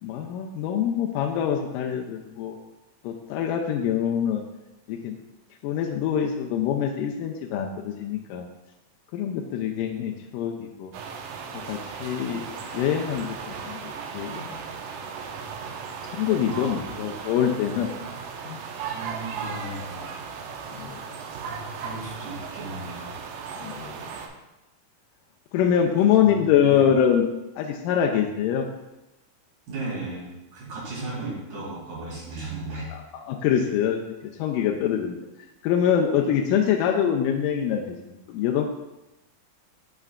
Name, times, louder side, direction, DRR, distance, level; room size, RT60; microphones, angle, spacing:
voice 1, 0.0-2.6 3.0-4.4 4.9-5.1 5.6-8.5 9.1-10.9 11.5-14.6 16.0-17.9 18.5-18.6 20.7-21.0 23.6-24.0 25.5-27.3 27.6-28.7 32.9-35.3 35.6-38.6, left 9 dB, 85° left, 2 dB, 2.2 m, -25 dB
sound 1, 10.9-24.3, right 6 dB, 85° right, 2.3 m, -36 dB
voice 2, 16.4-17.0 18.9-20.1 21.5-23.2 26.2-26.9 29.7-32.9, right 2 dB, 70° right, -7 dB, 4.1 m, -36 dB
8.9 x 5.6 x 2.4 m, 0.99 s
omnidirectional pair, 3.9 m